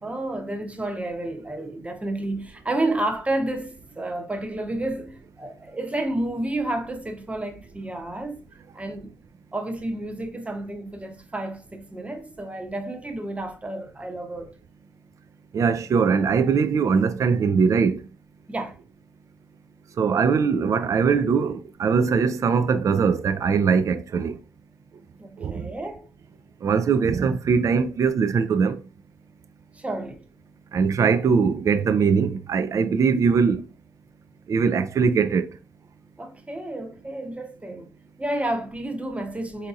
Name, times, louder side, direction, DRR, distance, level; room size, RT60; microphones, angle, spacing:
voice 1, 0.0-8.5 8.7-9.1 9.5-14.5 18.5-18.8 25.2-26.1 29.7-30.2 36.2-37.9 38.2-39.7, right 1 dB, 15° right, 0.8 m, -30 dB
voice 2, 15.5-18.0 20.0-24.4 25.4-25.7 26.6-28.8 30.7-33.6 34.5-35.5, right 5 dB, 40° right, 0.4 m, -21 dB
4.4 x 2.8 x 2.5 m
hypercardioid pair, 45°, 8 cm